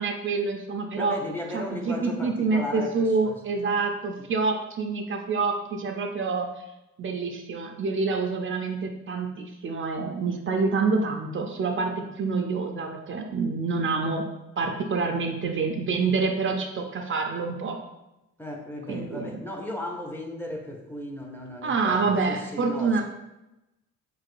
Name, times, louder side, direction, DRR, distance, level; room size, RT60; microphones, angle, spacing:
voice 1, 0.0-1.2 1.5-6.6 7.0-11.9 12.2-14.2 14.6-17.8 18.9-19.4 21.6-23.0, right 4 dB, 40° right, 3 dB, 0.5 m, -27 dB
voice 2, 1.0-3.4 18.4-23.0, left 1 dB, 5° left, 1 dB, 0.7 m, -36 dB
4.7 x 3.7 x 2.5 m, 0.94 s
cardioid pair, 90°, 30 cm